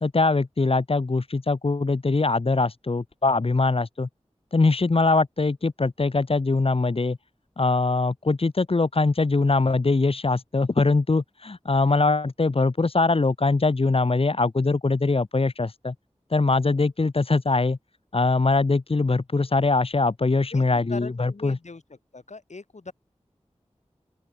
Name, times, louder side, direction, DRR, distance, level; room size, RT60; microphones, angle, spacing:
voice 1, 0.0-4.1 4.5-7.2 7.6-15.9 16.3-17.8 18.1-21.6, left 3 dB, 55° left, 1.1 m, -22 dB
voice 2, 20.5-22.9, left 3 dB, 80° left, 6.3 m, -41 dB
open air
wide cardioid pair, 60°, 12 cm